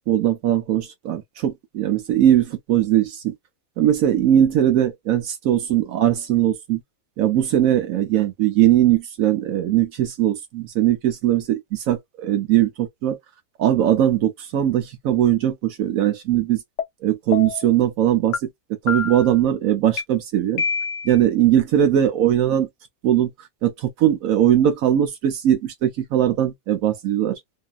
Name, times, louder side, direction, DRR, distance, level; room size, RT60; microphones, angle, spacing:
voice 1, 0.1-3.3 3.8-6.8 7.2-13.2 13.6-16.6 17.0-18.4 18.8-20.6 21.0-22.7 23.0-23.3 23.6-27.4, right 11 dB, 70° right, 1.0 m, -20 dB
sound 1, 16.8-16.9 17.3-17.7 18.3-18.4 18.9-19.3 20.0-20.1 20.6-21.2, left 6 dB, 65° left, 0.9 m, -26 dB
2.6 x 2.6 x 2.3 m
omnidirectional pair, 1.5 m